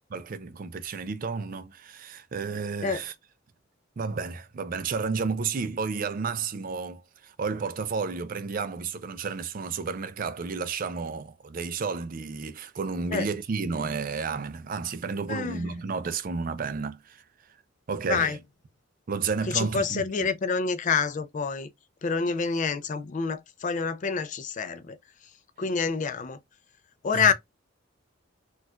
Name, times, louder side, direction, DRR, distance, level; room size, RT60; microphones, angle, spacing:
voice 1, 0.1-3.1 4.0-17.2 17.9-18.4 19.1-20.0 27.1-27.3, right 5 dB, 45° right, 0.4 m, -31 dB
voice 2, 15.3-15.7 18.1-18.4 19.5-21.7 22.0-25.0 25.6-26.4 27.0-27.3, left 5 dB, 40° left, 0.4 m, -27 dB
4.3 x 2.4 x 2.3 m
head